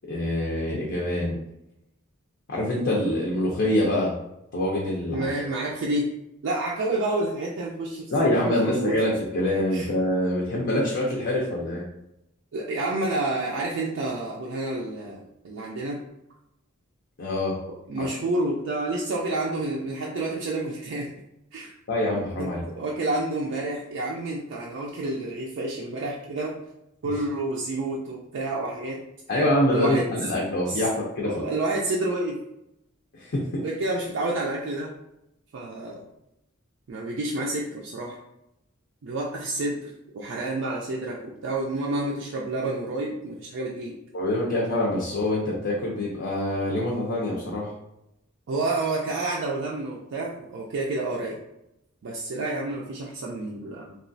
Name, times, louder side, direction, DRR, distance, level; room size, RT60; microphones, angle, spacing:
voice 1, 0.1-1.4 2.5-4.1 4.5-5.3 8.1-11.8 17.2-17.6 18.0-18.1 21.9-22.6 29.3-31.5 33.1-33.6 44.1-47.7, left 1 dB, 55° left, -3 dB, 0.5 m, -25 dB
voice 2, 5.1-6.1 6.4-9.0 9.7-9.9 12.5-16.0 17.9-21.1 21.5-21.7 22.4-26.6 27.0-29.0 29.7-30.1 30.7-30.9 31.2-32.4 33.6-34.9 35.5-36.1 36.9-38.2 39.0-44.0 48.5-51.4 52.0-54.0, right 2 dB, 65° right, -3 dB, 0.4 m, -29 dB
2.9 x 2.3 x 2.6 m, 0.85 s
head